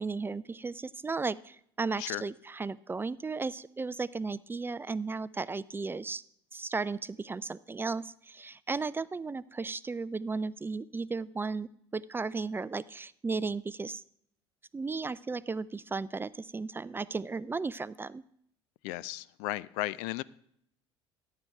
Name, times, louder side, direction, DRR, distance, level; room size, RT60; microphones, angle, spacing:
voice 1, 0.0-6.2 6.5-14.0 14.7-18.2, right 4 dB, 15° right, 19 dB, 0.3 m, -35 dB
voice 2, 18.8-20.2, left 17 dB, 60° left, 21 dB, 0.4 m, -35 dB
14.0 x 10.0 x 3.4 m, 0.69 s
figure-of-eight pair, 65°, 14 cm